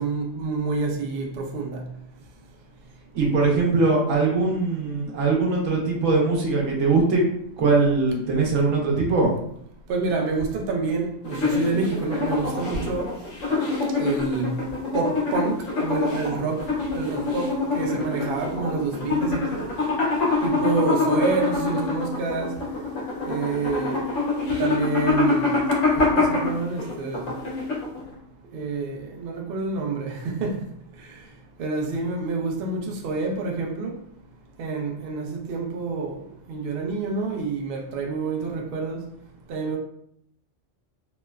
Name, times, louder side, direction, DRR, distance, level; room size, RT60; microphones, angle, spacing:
voice 1, 0.0-1.8 9.9-13.1 14.0-14.5 14.9-16.6 16.9-19.6 20.4-22.5 23.2-24.0 24.6-25.5 25.9-27.3 28.5-30.6 31.6-33.9 34.6-36.2 36.5-39.0 39.5-39.8, right 4 dB, 65° right, 0.6 m, -27 dB
voice 2, 3.1-7.2 7.6-9.3, right 3 dB, 80° right, 1.1 m, -21 dB
sound 1, 11.2-28.1, left 3 dB, 75° left, 1.2 m, -25 dB
3.0 x 2.0 x 2.3 m
omnidirectional pair, 1.3 m